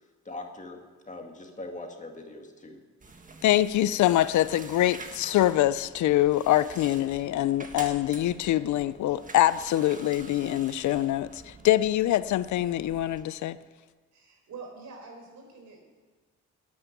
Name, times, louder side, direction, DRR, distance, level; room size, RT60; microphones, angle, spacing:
voice 1, 0.3-2.8, left 2 dB, 25° left, 3 dB, 2.0 m, -41 dB
sound 1, 3.0-13.2, right 3 dB, 25° right, 1.6 m, -47 dB
voice 2, 3.4-13.6, left 13 dB, 70° left, 16 dB, 0.6 m, -24 dB
voice 3, 14.1-15.8, right 4 dB, 70° right, 2 dB, 4.7 m, -45 dB
11.5 x 9.6 x 9.7 m, 1.4 s
cardioid pair, 90°, 30 cm